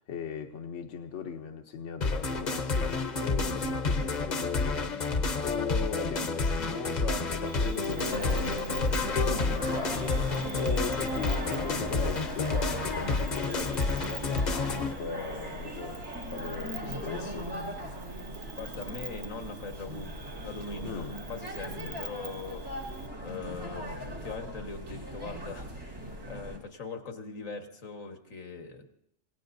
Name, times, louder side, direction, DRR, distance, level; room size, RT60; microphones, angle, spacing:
voice 1, 0.0-17.5 20.8-21.2 21.7-22.0, left 6 dB, 70° left, 4 dB, 1.1 m, -39 dB
sound 1, 2.0-14.9, left 3 dB, 40° left, 0.9 m, -29 dB
Cricket, 7.5-23.1, right 5 dB, 55° right, 1.4 m, -47 dB
sound 2, 8.0-26.6, equal, 80° right, 2.9 m, -39 dB
voice 2, 18.6-20.1 20.4-22.7 23.2-28.9, left 4 dB, 85° left, 5 dB, 1.9 m, -41 dB
27.0 x 18.0 x 2.6 m, 0.75 s
omnidirectional pair, 1.3 m